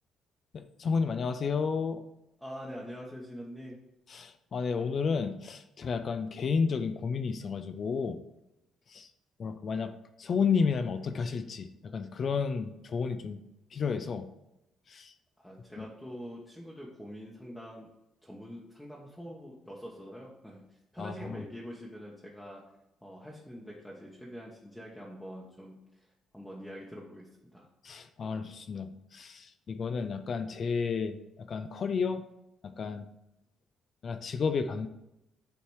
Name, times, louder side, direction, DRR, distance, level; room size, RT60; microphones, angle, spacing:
voice 1, 0.5-2.0 4.1-8.2 8.9-9.1 9.4-9.9 10.2-13.4 13.7-14.3 14.9-15.1 15.8-15.9 21.0-21.4 27.8-32.2 32.6-33.1 34.0-34.9, left 5 dB, 50° left, 9 dB, 0.4 m, -32 dB
voice 2, 2.4-3.8 15.4-17.9 18.2-22.6 23.0-26.1 26.3-27.7, equal, 5° left, -4 dB, 1.0 m, -45 dB
8.5 x 2.9 x 4.7 m, 0.88 s
cardioid pair, 95°, 0 cm